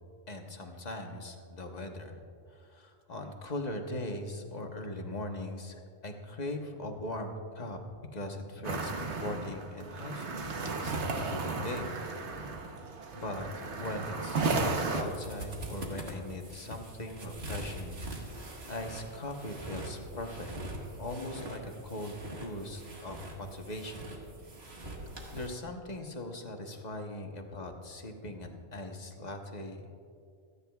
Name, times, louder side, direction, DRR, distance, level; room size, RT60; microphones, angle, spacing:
voice 1, 0.3-2.2 2.5-7.8 8.1-12.0 12.3-12.5 13.1-20.5 21.0-22.1 22.4-24.0 25.3-30.0, left 1 dB, 40° left, 3 dB, 1.2 m, -40 dB
sound 1, 8.6-15.0, right 3 dB, 85° right, 1.3 m, -34 dB
sound 2, 14.6-25.5, right 1 dB, 65° right, 1.9 m, -43 dB
26.5 x 9.8 x 2.4 m, 2.4 s
omnidirectional pair, 1.1 m